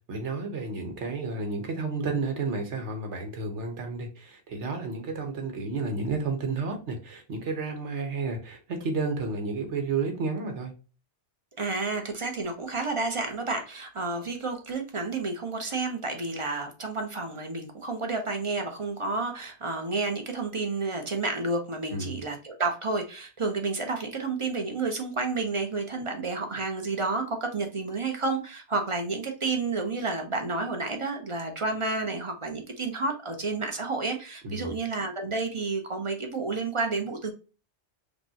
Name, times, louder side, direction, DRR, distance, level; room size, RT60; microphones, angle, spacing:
voice 1, 0.1-10.7 21.9-22.2 34.4-34.8, right 3 dB, 80° right, 4 dB, 1.3 m, -31 dB
voice 2, 11.6-37.3, right 3 dB, 30° right, 4 dB, 0.7 m, -30 dB
5.3 x 2.2 x 2.7 m, 0.33 s
omnidirectional pair, 1.2 m